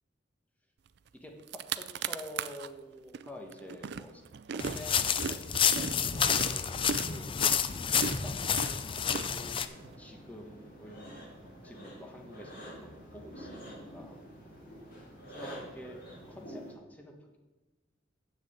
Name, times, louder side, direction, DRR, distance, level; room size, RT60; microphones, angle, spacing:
sound 1, 1.1-1.2 1.4-2.7 3.1-9.9, right 6 dB, 60° right, 0.4 m, -38 dB
voice 1, 1.7-4.2 4.5-7.3 7.9-9.0 9.3-11.3 11.6-14.2 15.3-17.4, left 1 dB, 10° left, 1 dB, 1.3 m, -48 dB
sound 2, 4.6-9.7, left 7 dB, 30° left, 0.4 m, -29 dB
sound 3, 8.1-16.7, equal, 50° left, 3.8 m, -48 dB
7.5 x 6.8 x 8.1 m, 1.2 s
head